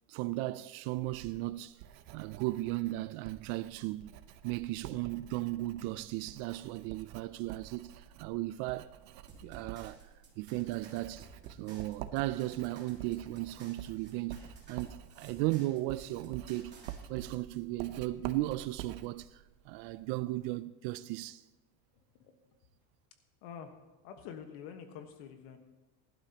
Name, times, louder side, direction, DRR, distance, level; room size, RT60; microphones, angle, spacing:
voice 1, 0.1-1.8 2.1-4.1 4.4-8.9 9.4-10.0 10.4-16.7 17.1-21.4, right 17 dB, 65° right, 0.5 m, -36 dB
Writing, 1.0-20.5, right 11 dB, 80° right, 0.9 m, -49 dB
sound 1, 9.3-17.0, right 3 dB, 20° right, 3.2 m, -55 dB
voice 2, 23.4-25.6, left 7 dB, 70° left, 1.5 m, -48 dB
19.0 x 12.0 x 2.9 m
cardioid pair, 155°, 47 cm